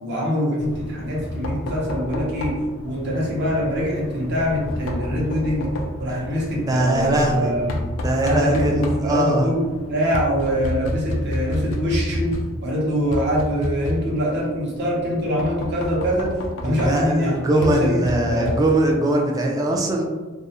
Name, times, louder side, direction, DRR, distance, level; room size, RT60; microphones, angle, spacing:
voice 1, 0.0-2.6 2.8-5.7 6.0-7.7 8.2-16.4 16.6-18.5, equal, 60° right, -3 dB, 0.7 m, -24 dB
Knock, 0.6-19.0, left 1 dB, 70° left, 0.4 m, -30 dB
voice 2, 6.7-7.5 8.0-9.5 16.6-20.0, right 1 dB, 20° right, 0 dB, 0.3 m, -21 dB
2.3 x 2.0 x 2.7 m, 1.3 s
head